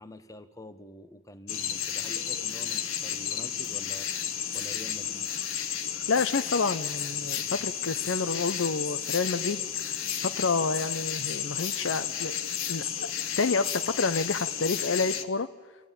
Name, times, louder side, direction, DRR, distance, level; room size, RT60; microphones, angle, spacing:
voice 1, 0.0-5.3, left 1 dB, 15° left, 10 dB, 1.0 m, -47 dB
sound 1, 1.5-15.2, left 9 dB, 80° left, 1.3 m, -32 dB
voice 2, 6.1-12.3 12.7-13.1 13.4-15.5, left 4 dB, 65° left, 11 dB, 0.7 m, -29 dB
29.0 x 13.0 x 9.2 m, 1.4 s
head